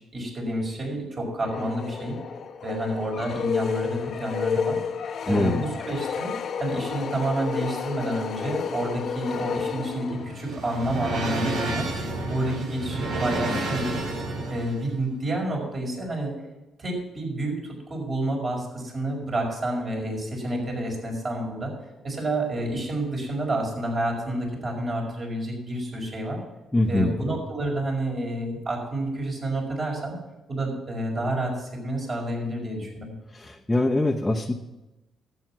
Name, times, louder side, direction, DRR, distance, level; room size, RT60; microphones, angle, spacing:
voice 1, 0.0-2.2 2.6-4.8 5.3-11.9 12.3-14.0 14.5-16.4 16.8-21.7 22.0-26.4 26.9-30.2 30.5-33.1, right 1 dB, 40° right, -1 dB, 5.3 m, -29 dB
sound 1, 1.4-10.5, left 6 dB, 60° left, 0.8 m, -31 dB
voice 2, 5.3-5.6 26.7-27.2 33.3-34.5, left 1 dB, 15° left, 2 dB, 0.8 m, -23 dB
sound 2, 9.8-14.8, right 2 dB, 80° right, 2.6 m, -30 dB
12.0 x 8.9 x 6.0 m, 1.0 s
cardioid pair, 90°, 0 cm